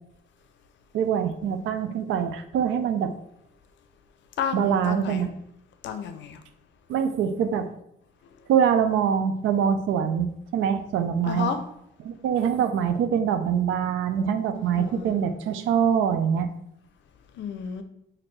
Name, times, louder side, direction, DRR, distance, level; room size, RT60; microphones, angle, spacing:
voice 1, 0.9-3.1 4.5-5.3 6.9-7.7 8.5-11.5 12.0-16.5, right 8 dB, 80° right, 9 dB, 0.5 m, -24 dB
voice 2, 4.4-5.3 5.8-6.4 11.3-11.6 14.7-15.2 17.3-17.8, left 7 dB, 70° left, 9 dB, 0.5 m, -31 dB
4.2 x 2.6 x 3.2 m, 0.77 s
cardioid pair, 90°, 20 cm